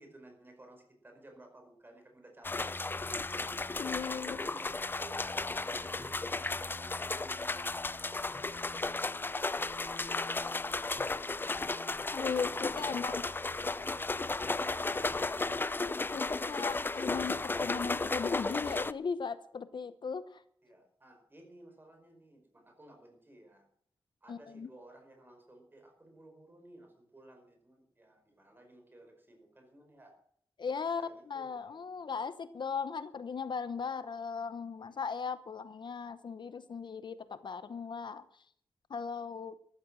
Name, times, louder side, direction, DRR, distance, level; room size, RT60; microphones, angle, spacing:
voice 1, 0.0-2.9 4.0-8.6 9.1-11.0 12.7-15.4 20.6-23.7 24.2-30.2 30.7-32.0 34.8-35.0, right 1 dB, 25° right, 4 dB, 4.9 m, -56 dB
sound 1, 2.4-18.9, left 3 dB, 25° left, 0.5 m, -34 dB
voice 2, 3.8-4.4 12.1-13.2 16.1-20.4 24.3-24.7 30.6-31.0 31.3-38.2 38.9-39.6, left 5 dB, 55° left, 13 dB, 0.9 m, -37 dB
14.0 x 13.0 x 6.2 m, 0.63 s
wide cardioid pair, 150°, 9 cm